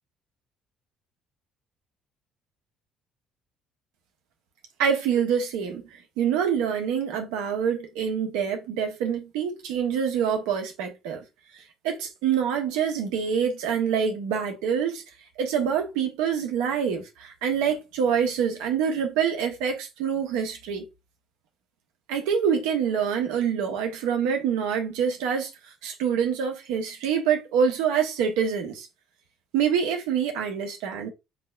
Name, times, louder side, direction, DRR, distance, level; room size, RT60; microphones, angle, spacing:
voice 1, 4.8-5.8 6.2-11.2 11.5-15.0 15.4-20.8 22.1-25.5 25.8-28.9 29.5-31.1, right 7 dB, 65° right, 1.1 m, -26 dB
7.3 x 3.0 x 2.3 m
figure-of-eight pair, 50°, 0 cm